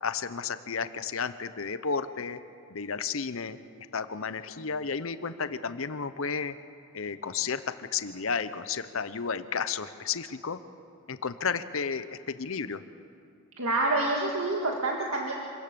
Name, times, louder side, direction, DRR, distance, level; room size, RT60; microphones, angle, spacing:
voice 1, 0.0-2.4 2.7-3.6 3.9-6.5 6.9-10.6 11.1-12.8, left 5 dB, 65° left, 12 dB, 0.8 m, -32 dB
voice 2, 13.6-15.3, right 2 dB, 75° right, -1 dB, 2.0 m, -27 dB
26.0 x 17.0 x 6.8 m, 2.4 s
head